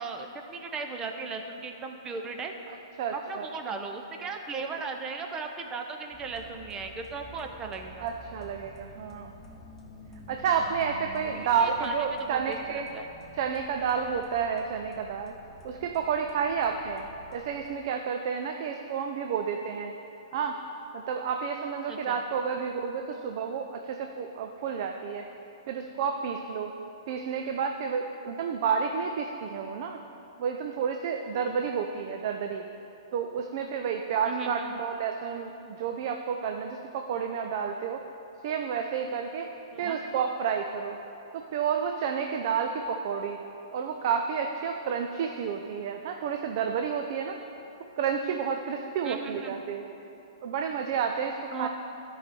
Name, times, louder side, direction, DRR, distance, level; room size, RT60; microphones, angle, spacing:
voice 1, 0.0-2.5 3.1-8.1 11.3-13.1 21.9-22.2 34.2-34.6 39.7-40.0 49.0-49.6 51.5-51.7, right 4 dB, 20° right, 4 dB, 0.8 m, -37 dB
voice 2, 3.0-3.5 8.0-9.3 10.3-12.9 13.3-15.3 15.6-17.0 17.3-19.9 20.3-20.6 20.9-25.3 25.7-26.7 27.1-30.0 30.4-32.7 33.1-38.0 38.4-39.5 39.8-41.0 41.3-43.4 43.7-47.4 48.0-49.8 50.4-51.7, right 6 dB, 50° right, 4 dB, 0.5 m, -30 dB
sound 1, 6.1-17.7, left 1 dB, 15° left, 1.3 m, -49 dB
13.0 x 4.9 x 4.2 m, 2.8 s
hypercardioid pair, 130°, 3 cm